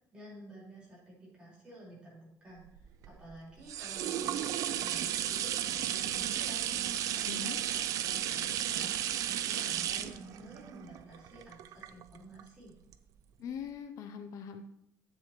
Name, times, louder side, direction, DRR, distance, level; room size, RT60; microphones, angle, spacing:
voice 1, 0.1-6.7 7.1-12.7, right 1 dB, 15° right, -7 dB, 3.8 m, -51 dB
sound 1, 2.7-12.4 12.9-13.0, right 11 dB, 60° right, 0.4 m, -34 dB
voice 2, 7.3-7.6 13.4-14.7, left 7 dB, 55° left, 8 dB, 0.5 m, -42 dB
10.5 x 7.6 x 3.0 m, 0.79 s
cardioid pair, 170°, 6 cm